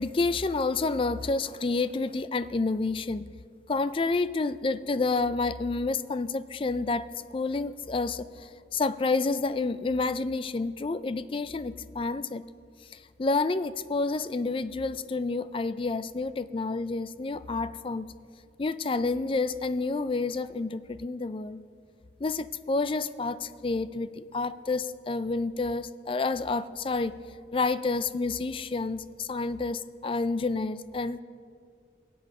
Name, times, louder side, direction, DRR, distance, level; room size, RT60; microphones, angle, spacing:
voice 1, 0.0-3.2 3.7-7.1 7.3-12.4 13.2-18.1 18.6-21.6 22.2-27.1 27.5-31.2, left 3 dB, 30° left, 14 dB, 0.4 m, -29 dB
22.5 x 7.9 x 4.9 m, 2.2 s
head